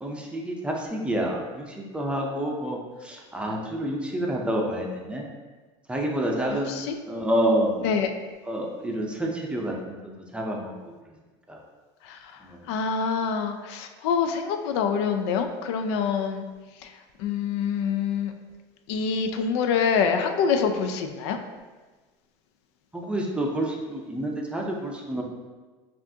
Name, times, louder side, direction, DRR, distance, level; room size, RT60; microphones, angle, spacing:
voice 1, 0.0-5.2 5.9-6.8 7.1-7.7 8.5-9.7 10.0-10.7 11.5-11.6 12.5-12.6 22.9-25.2, right 1 dB, 10° right, 0 dB, 0.6 m, -28 dB
voice 2, 12.7-16.4 17.2-18.3 18.9-21.4, left 6 dB, 85° left, 6 dB, 0.4 m, -25 dB
5.6 x 2.5 x 2.7 m, 1.3 s
supercardioid pair, 120°, 14 cm